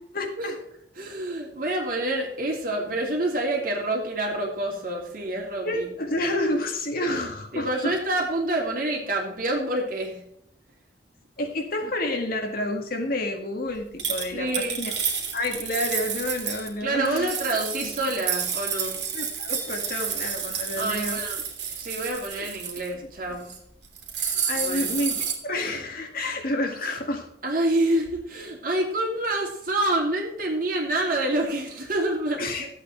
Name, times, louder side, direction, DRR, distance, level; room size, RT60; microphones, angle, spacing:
voice 1, 0.1-0.6 5.6-7.9 11.4-14.9 15.3-17.4 17.8-17.9 19.1-21.2 22.4-22.5 24.2-27.3 32.4-32.7, left 1 dB, 55° left, 3 dB, 1.9 m, -29 dB
voice 2, 1.0-5.9 7.5-10.2 14.3-14.8 16.8-19.0 20.8-21.4 21.8-23.5 24.5-24.9 27.4-32.7, right 1 dB, 50° right, 0 dB, 2.8 m, -27 dB
sound 1, 14.0-16.7 17.1-22.9 23.3-23.6 23.8-25.4, right 7 dB, 70° right, 2.5 m, -30 dB
13.0 x 8.3 x 4.4 m, 0.74 s
head